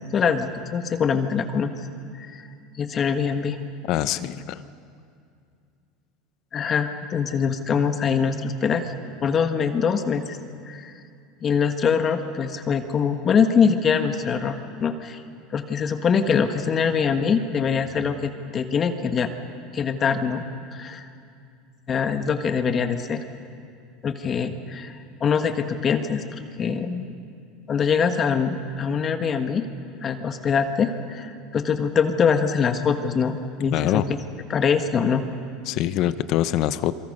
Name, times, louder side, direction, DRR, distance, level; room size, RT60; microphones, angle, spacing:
voice 1, 0.1-1.7 2.2-2.5 2.8-3.6 6.5-8.9 9.2-10.4 10.7-10.9 11.4-15.2 15.5-19.3 19.7-20.4 20.7-21.0 21.9-23.2 24.0-27.1 27.7-29.6 30.0-34.2 34.5-35.3, left 6 dB, 35° left, 7 dB, 1.4 m, -23 dB
voice 2, 3.9-4.6 33.7-34.1 35.7-36.9, left 13 dB, 55° left, 14 dB, 0.8 m, -24 dB
28.5 x 23.5 x 5.5 m, 2.4 s
supercardioid pair, 105°, 0 cm